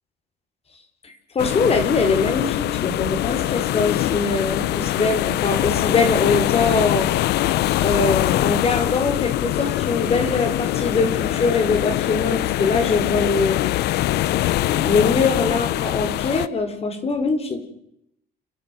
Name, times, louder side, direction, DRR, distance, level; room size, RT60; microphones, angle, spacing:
voice 1, 1.0-7.1 7.8-13.6 14.6-17.6, left 4 dB, 35° left, 8 dB, 4.7 m, -22 dB
sound 1, 1.4-16.5, left 15 dB, 80° left, 0.8 m, -23 dB
30.0 x 12.0 x 7.7 m, 0.75 s
cardioid pair, 110°, 17 cm